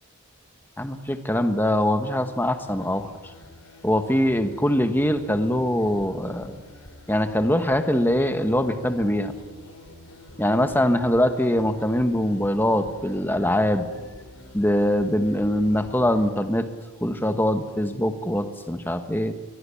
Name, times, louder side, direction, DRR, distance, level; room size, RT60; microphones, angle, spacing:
voice 1, 0.8-3.1 3.8-6.6 7.1-9.3 10.4-13.9 14.5-16.7 17.0-19.3, left 1 dB, 10° left, 7 dB, 1.3 m, -23 dB
sound 1, 2.6-16.3, left 1 dB, 85° left, 3.6 m, -47 dB
22.0 x 21.5 x 7.1 m, 1.3 s
head